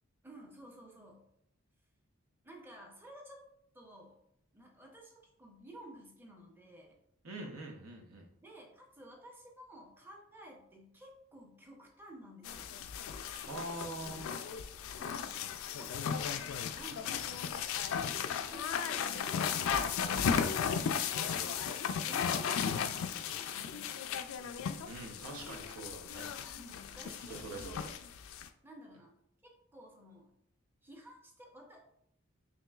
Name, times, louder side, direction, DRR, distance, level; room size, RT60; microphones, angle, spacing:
voice 1, 0.2-1.3 2.4-3.5 3.7-4.2 4.5-7.0 8.4-12.7 15.0-15.4 15.7-17.3 18.5-24.2 26.6-27.9 28.6-29.2 29.4-30.3 30.8-31.8, equal, 10° right, 1 dB, 0.6 m, -53 dB
voice 2, 7.2-8.3 13.3-14.3 24.9-26.3 27.3-27.9, right 2 dB, 80° right, 2 dB, 0.8 m, -44 dB
sound 1, 12.4-28.5, left 7 dB, 75° left, 0.3 m, -35 dB
5.8 x 2.9 x 2.3 m, 0.73 s
head